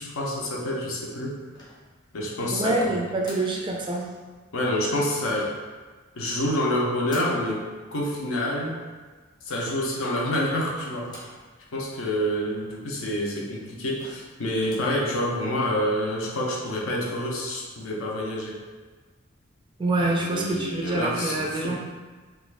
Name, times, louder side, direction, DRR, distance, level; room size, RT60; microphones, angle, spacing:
voice 1, 0.0-1.3 2.1-3.0 4.5-5.5 6.1-7.6 7.9-8.8 9.4-11.4 11.7-18.6 19.9-21.8, left 1 dB, 75° left, -2 dB, 0.6 m, -28 dB
sound 1, 1.5-2.3 3.2-3.6 5.3-5.7 7.1-7.5 9.5-9.9 11.0-11.5 11.9-12.0 12.3-12.4 13.1-13.2 13.6-13.7 14.0-14.3 14.6-15.0, left 1 dB, 20° left, 0.6 m, -45 dB
voice 2, 2.5-4.1 19.8-21.8, right 2 dB, 25° right, -1 dB, 0.3 m, -26 dB
2.5 x 2.3 x 3.2 m, 1.4 s
head